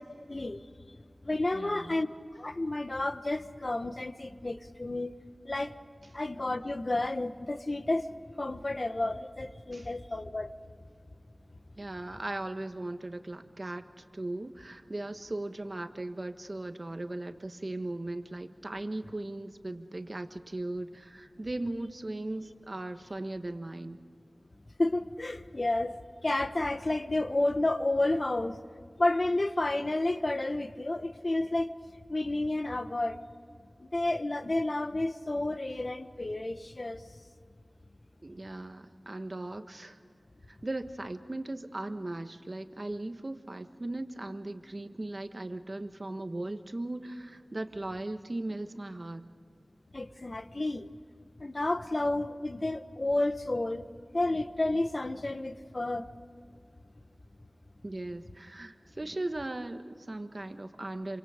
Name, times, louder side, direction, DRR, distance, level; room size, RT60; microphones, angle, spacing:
voice 1, 0.3-0.6 1.2-2.1 2.4-5.1 5.4-5.7 6.1-10.5 24.8-25.9 26.2-28.6 29.0-31.7 32.1-33.2 33.8-37.0 49.9-50.9 51.4-53.8 54.1-56.0, left 2 dB, 50° left, 10 dB, 1.1 m, -31 dB
voice 2, 1.5-2.0 9.7-9.9 11.8-13.8 14.1-24.0 38.2-40.0 40.6-49.3 57.8-61.2, right 2 dB, 45° right, 7 dB, 1.4 m, -38 dB
27.5 x 25.0 x 5.1 m, 2.2 s
wide cardioid pair, 50°, 0 cm